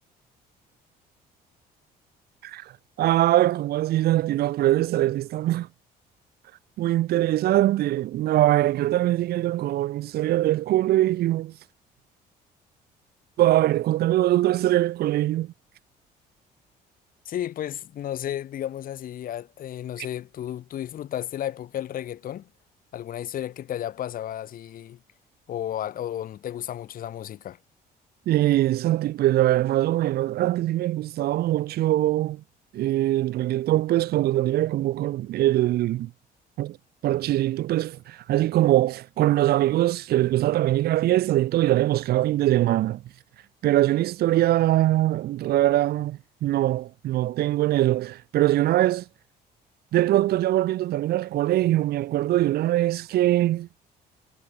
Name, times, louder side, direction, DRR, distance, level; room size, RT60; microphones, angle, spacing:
voice 1, 3.0-5.7 6.8-11.5 13.4-15.5 28.3-32.4 32.7-36.1 36.6-36.8 37.0-43.0 43.6-49.0 49.9-53.7, right 14 dB, 70° right, 1.3 m, -22 dB
voice 2, 17.2-22.5 22.9-25.0 25.5-27.6, left 11 dB, 55° left, 1.7 m, -33 dB
cardioid pair, 110°, 17 cm